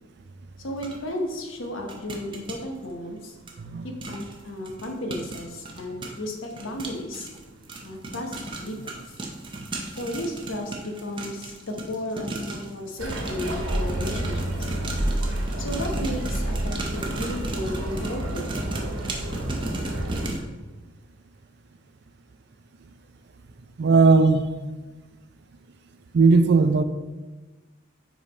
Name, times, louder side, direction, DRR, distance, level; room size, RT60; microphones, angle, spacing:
voice 1, 0.6-3.4 3.8-7.3 7.8-9.2 9.9-14.7 15.6-18.5, left 1 dB, 75° left, 2 dB, 1.0 m, -34 dB
sound 1, 0.8-0.9 1.9-2.6 3.5-3.6 4.0-4.4 4.7-12.7 13.1-20.4, right 2 dB, 25° right, 0.7 m, -35 dB
sound 2, 13.0-20.3, right 1 dB, 90° right, 1.2 m, -29 dB
voice 2, 23.8-24.5 26.1-26.8, right 4 dB, 55° right, 10 dB, 0.4 m, -17 dB
5.2 x 5.0 x 4.2 m, 1.2 s
head